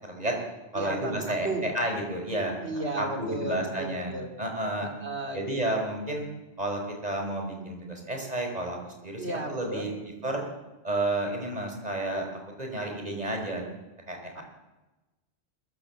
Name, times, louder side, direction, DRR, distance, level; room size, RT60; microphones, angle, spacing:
voice 1, 0.0-0.4 0.7-4.9 5.3-6.3 6.6-9.9 10.2-10.4 10.8-13.6 14.1-14.4, right 1 dB, 35° right, 2 dB, 5.5 m, -31 dB
voice 2, 0.7-1.7 2.6-4.4 4.8-5.5 9.2-9.9 14.4-14.5, right 2 dB, 70° right, 4 dB, 3.6 m, -34 dB
22.5 x 22.5 x 7.5 m, 1.1 s
omnidirectional pair, 1.2 m